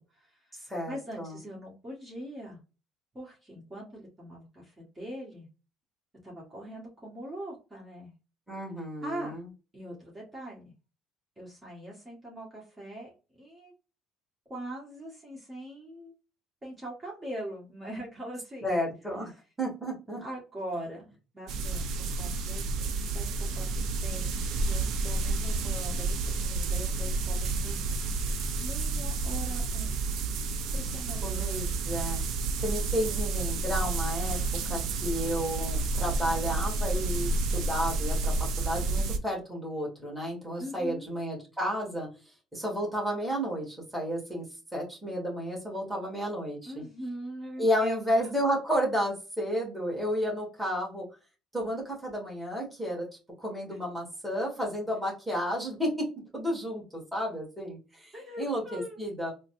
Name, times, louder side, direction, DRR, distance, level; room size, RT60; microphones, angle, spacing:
voice 1, 0.0-2.6 3.1-5.5 6.2-8.1 9.0-9.4 9.7-10.7 11.4-13.1 13.4-13.7 14.5-16.1 16.6-18.7 20.2-27.9 28.6-30.3 30.7-31.2 40.6-41.1 46.6-48.3 53.7-53.8 58.1-59.0, equal, 25° right, -4 dB, 1.7 m, -42 dB
voice 2, 0.7-1.4 8.5-9.5 18.6-19.3 19.6-20.2 31.2-32.2 32.6-34.4 34.7-42.1 42.5-44.5 44.7-46.9 47.6-51.1 51.5-53.1 53.4-56.1 56.3-59.3, equal, 5° right, -3 dB, 1.9 m, -32 dB
Autumn wind and dry leaves, 21.5-39.2, right 3 dB, 70° right, 0.6 m, -30 dB
3.9 x 2.2 x 2.6 m, 0.31 s
supercardioid pair, 95°, 0 cm